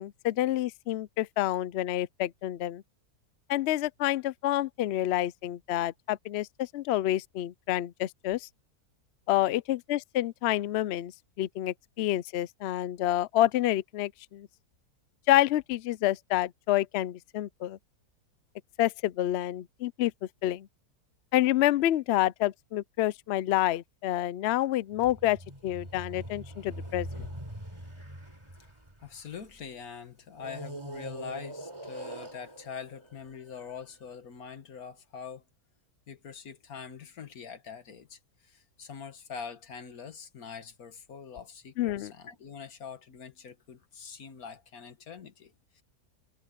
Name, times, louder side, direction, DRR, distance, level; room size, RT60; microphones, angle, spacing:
voice 1, 0.0-2.8 3.5-8.5 9.3-11.1 11.4-14.5 15.3-17.8 18.8-20.1 20.4-20.7 21.3-27.3 41.8-42.1, left 14 dB, 80° left, 0.5 m, -28 dB
sound 1, 24.9-29.6 30.4-33.8, right 1 dB, 15° right, 4.2 m, -43 dB
voice 2, 29.0-35.4 36.1-45.8, left 6 dB, 65° left, 1.9 m, -44 dB
omnidirectional pair, 1.7 m